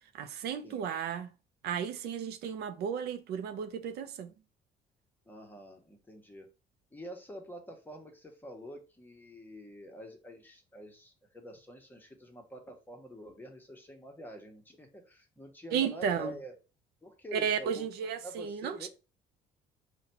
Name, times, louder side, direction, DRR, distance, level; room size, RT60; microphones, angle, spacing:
voice 1, 0.1-1.3 1.6-4.3 15.7-16.3 17.3-18.9, right 7 dB, 75° right, 0.6 m, -33 dB
voice 2, 5.3-6.5 6.9-16.5 17.0-18.9, equal, 10° left, 1.0 m, -47 dB
3.9 x 2.3 x 4.2 m
cardioid pair, 110°, 17 cm